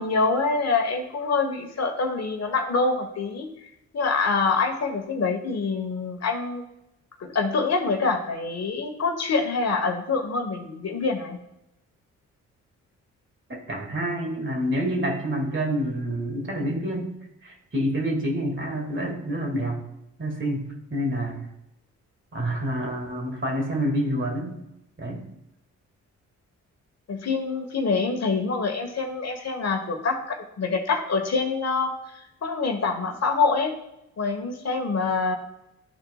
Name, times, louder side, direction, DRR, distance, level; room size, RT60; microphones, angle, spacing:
voice 1, 0.0-3.5 3.9-6.6 7.2-11.4 27.1-33.7 34.2-35.4, left 4 dB, 55° left, 4 dB, 1.2 m, -25 dB
voice 2, 13.5-17.1 17.4-19.8 20.2-21.4 22.3-24.6 25.0-25.2, equal, 40° right, 0 dB, 2.2 m, -28 dB
12.0 x 4.0 x 2.3 m, 0.85 s
supercardioid pair, 55°, 32 cm